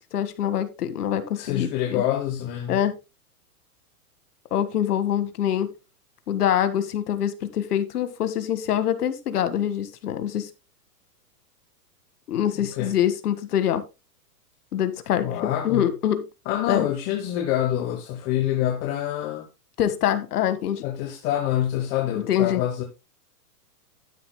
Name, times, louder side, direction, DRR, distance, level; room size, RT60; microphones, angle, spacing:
voice 1, 0.1-2.0 2.7-3.0 4.5-5.7 6.3-10.5 12.3-13.8 14.7-16.2 16.7-16.9 19.8-20.8 22.3-22.6, left 10 dB, 70° left, 1.8 m, -24 dB
voice 2, 1.4-2.8 12.6-12.9 15.2-15.9 16.5-19.5 20.8-22.8, left 11 dB, 20° left, 0.9 m, -26 dB
12.0 x 10.0 x 2.2 m
supercardioid pair, 165°, 47 cm